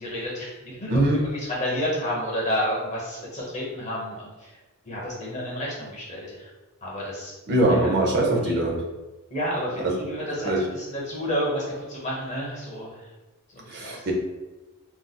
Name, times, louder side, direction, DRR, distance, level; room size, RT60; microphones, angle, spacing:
voice 1, 0.0-4.5 4.8-6.5 6.8-7.3 7.7-7.9 8.4-8.5 9.3-11.6 11.9-13.1 13.5-14.0, equal, 35° left, -4 dB, 0.9 m, -30 dB
voice 2, 0.9-1.2 7.5-8.8 9.8-9.9 10.4-10.6 13.7-14.1, right 1 dB, 50° right, 0 dB, 0.6 m, -22 dB
3.9 x 2.4 x 2.2 m, 1.1 s
head